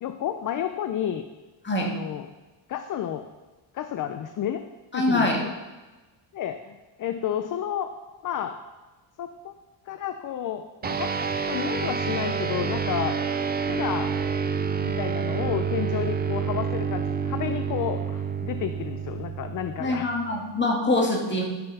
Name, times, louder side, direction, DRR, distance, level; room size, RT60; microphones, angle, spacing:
voice 1, 0.0-1.2 1.8-2.3 2.7-3.3 3.7-4.6 4.9-5.5 6.3-7.9 8.2-8.6 9.2-9.5 9.9-11.2 11.5-13.2 13.7-14.1 14.8-20.1, left 10 dB, 40° left, 8 dB, 0.5 m, -31 dB
voice 2, 4.9-5.4 19.8-21.4, left 2 dB, 20° left, -1 dB, 2.0 m, -24 dB
sound 1, 10.8-20.6, right 6 dB, 20° right, 0.4 m, -28 dB
11.0 x 6.6 x 5.6 m, 1.2 s
cardioid pair, 150°, 48 cm